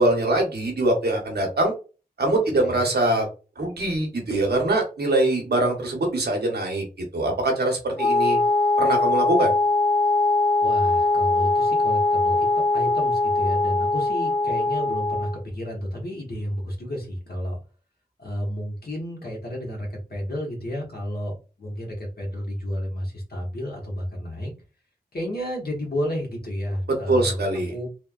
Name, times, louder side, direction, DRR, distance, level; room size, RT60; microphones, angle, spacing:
voice 1, 0.0-1.7 2.2-3.3 3.6-6.8 7.1-8.4 8.8-9.5 27.1-27.7, right 2 dB, 90° right, 1 dB, 0.9 m, -23 dB
Wind instrument woodwind instrument, 8.0-15.4, left 2 dB, 40° left, 1.0 m, -21 dB
voice 2, 10.6-12.5 12.7-17.6 18.2-24.5 25.1-27.4 27.7-27.9, equal, 70° left, -1 dB, 1.2 m, -31 dB
3.3 x 2.2 x 2.3 m, 0.33 s
wide cardioid pair, 50°, 16 cm